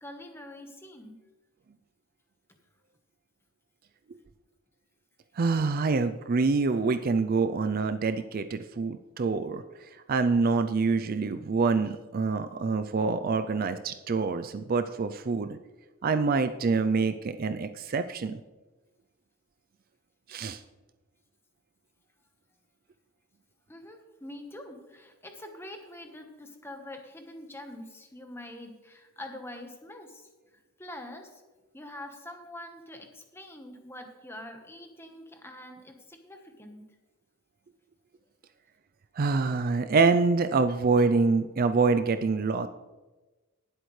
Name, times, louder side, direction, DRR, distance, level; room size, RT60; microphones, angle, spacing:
voice 1, 0.0-1.2 23.7-30.3 30.8-31.4 31.7-36.8, left 1 dB, 10° left, 4 dB, 1.2 m, -45 dB
voice 2, 5.4-15.6 16.0-18.4 20.3-20.6 39.2-42.7, right 4 dB, 45° right, 10 dB, 0.4 m, -26 dB
18.5 x 7.8 x 3.2 m, 1.2 s
head